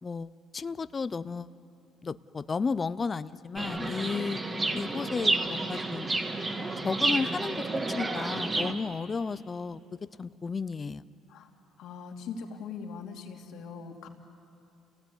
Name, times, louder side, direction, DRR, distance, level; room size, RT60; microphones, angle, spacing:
voice 1, 0.0-1.5 2.0-4.4 4.7-6.1 6.8-9.8 10.2-11.0, left 5 dB, 30° left, 16 dB, 0.6 m, -33 dB
Chirp tweet, 3.5-8.7, right 2 dB, 20° right, 1.8 m, -30 dB
voice 2, 11.8-14.1, left 5 dB, 75° left, 2 dB, 2.8 m, -41 dB
30.0 x 17.0 x 9.8 m, 2.6 s
cardioid pair, 115°, 0 cm